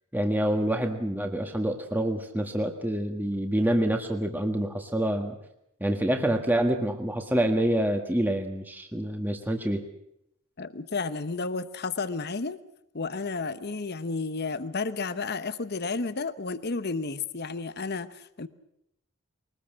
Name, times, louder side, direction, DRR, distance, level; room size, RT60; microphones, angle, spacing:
voice 1, 0.1-5.4 5.8-9.8, right 1 dB, 10° right, 4 dB, 1.6 m, -27 dB
voice 2, 10.6-12.6 12.9-18.5, left 4 dB, 45° left, 13 dB, 0.9 m, -32 dB
23.0 x 19.5 x 7.5 m, 0.79 s
head